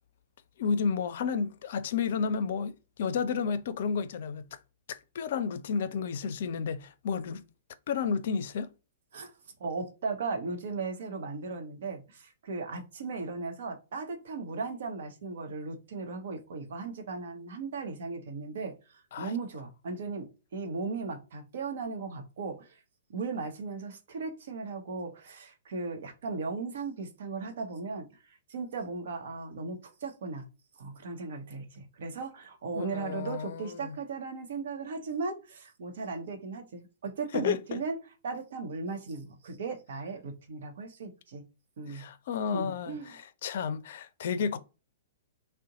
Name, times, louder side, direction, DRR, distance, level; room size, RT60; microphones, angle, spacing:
voice 1, 0.6-4.4 4.9-7.4 7.9-8.7 19.1-19.3 32.8-34.0 37.3-37.8 41.9-44.6, left 6 dB, 55° left, 0.4 m, -31 dB
voice 2, 9.6-22.8 23.1-30.4 30.8-38.0 38.2-41.4 41.8-42.1 42.5-43.2, right 4 dB, 60° right, 0.9 m, -37 dB
2.6 x 2.1 x 3.8 m
figure-of-eight pair, 110°, 0 cm